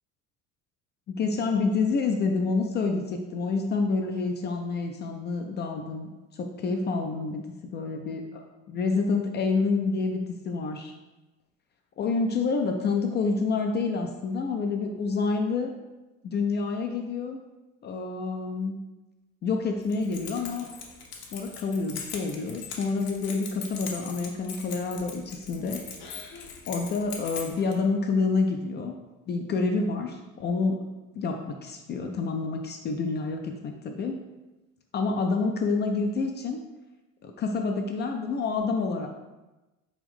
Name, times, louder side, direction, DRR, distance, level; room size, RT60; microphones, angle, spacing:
voice 1, 1.1-7.4 7.7-8.4 8.7-10.9 12.0-15.7 16.2-17.4 17.8-18.8 19.4-20.7 21.3-25.8 26.7-28.9 29.3-30.9 31.1-34.2 34.9-36.6 37.2-39.1, left 4 dB, 30° left, 4 dB, 0.3 m, -28 dB
Keys jangling, 19.8-27.7, left 6 dB, 60° left, 0.9 m, -41 dB
4.9 x 2.5 x 3.5 m, 1.1 s
hypercardioid pair, 70°, 40 cm